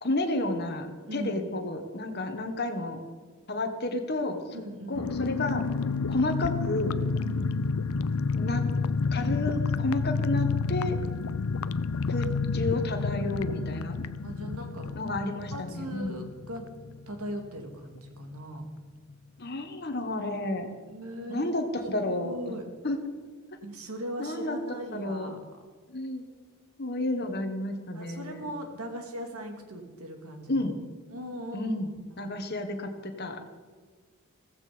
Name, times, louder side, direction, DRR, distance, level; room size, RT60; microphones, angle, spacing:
voice 1, 0.0-3.0 3.5-4.4 4.9-5.7 6.1-7.0 8.3-8.6 9.1-11.0 12.1-12.3 12.5-14.0 14.9-16.3 19.4-20.7 21.3-22.4 22.8-23.0 24.2-24.6 24.9-25.3 25.9-26.3 26.8-28.4 30.5-30.8 31.5-31.9 32.2-33.5, left 2 dB, 45° left, 6 dB, 1.6 m, -31 dB
voice 2, 1.1-1.4 4.5-5.1 7.2-7.7 12.1-12.3 14.2-15.0 15.3-16.6 17.1-18.6 20.9-21.5 22.0-22.6 23.6-25.4 27.9-30.6 31.1-31.7 32.2-32.3, equal, 80° right, 4 dB, 2.6 m, -39 dB
sound 1, 4.9-17.3 17.6-17.7 17.9-18.2, left 4 dB, 75° left, 0.5 m, -30 dB
16.0 x 15.0 x 5.2 m, 1.5 s
head